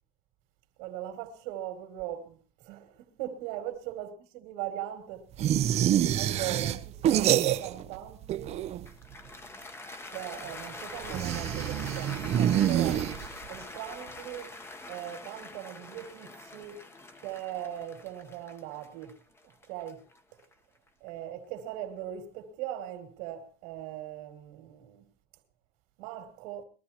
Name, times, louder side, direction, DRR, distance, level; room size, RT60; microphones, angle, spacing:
voice 1, 0.8-5.6 6.2-8.5 10.1-13.1 13.5-14.5 14.9-16.9 17.2-19.2 19.7-20.0 21.0-25.1 26.0-26.6, right 12 dB, 80° right, 2.4 m, -39 dB
sound 1, 5.4-8.0 8.2-9.0 11.0-13.6, right 11 dB, 35° right, 0.6 m, -27 dB
Cheering / Applause, 8.9-21.1, left 2 dB, 15° left, 0.9 m, -44 dB
21.5 x 13.5 x 2.9 m
cardioid pair, 145°, 18 cm